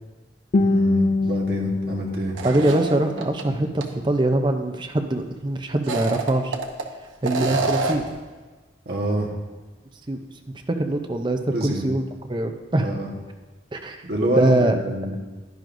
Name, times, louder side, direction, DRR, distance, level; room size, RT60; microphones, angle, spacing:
Guitar, 0.5-3.5, left 2 dB, 40° left, 0.3 m, -24 dB
voice 1, 0.6-2.4 7.5-7.6 8.8-9.3 11.5-11.9 12.8-13.1 14.0-15.1, right 1 dB, 55° right, -1 dB, 1.4 m, -27 dB
sound 1, 2.3-3.4 3.8-3.9 5.7-6.8 7.2-8.1, right 3 dB, 85° right, 0.9 m, -27 dB
voice 2, 2.4-6.5 7.2-8.1 10.1-10.2 10.7-12.0 12.3-12.9 13.7-14.0 14.4-14.8, right 1 dB, 25° right, 5 dB, 0.6 m, -23 dB
10.5 x 10.5 x 2.6 m, 1.3 s
head